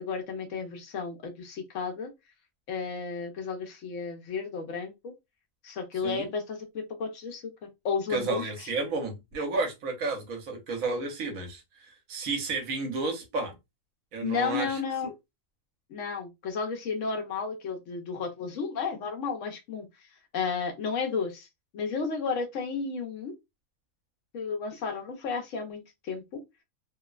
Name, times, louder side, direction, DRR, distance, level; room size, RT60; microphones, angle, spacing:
voice 1, 0.0-2.1 2.7-5.1 5.6-7.4 7.8-8.7 14.2-15.1 15.9-19.9 20.3-21.5 21.7-23.3 24.3-26.4, left 5 dB, 70° left, 0.9 m, -33 dB
voice 2, 8.1-13.5 14.1-14.8, right 3 dB, 80° right, 1.2 m, -32 dB
2.9 x 2.0 x 2.3 m
omnidirectional pair, 1.4 m